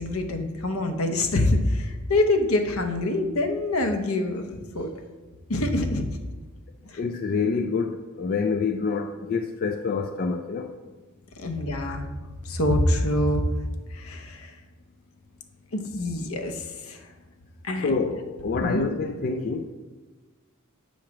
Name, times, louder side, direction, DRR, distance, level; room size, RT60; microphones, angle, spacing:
voice 1, 0.0-4.9 5.5-6.2 11.4-12.1 12.4-13.4 13.9-14.5 15.7-17.0 17.6-17.9 18.6-18.9, left 1 dB, 75° left, 0.8 m, -25 dB
voice 2, 7.0-7.9 8.2-10.7 17.8-19.8, left 4 dB, 45° left, 0.3 m, -27 dB
7.4 x 3.1 x 5.8 m
head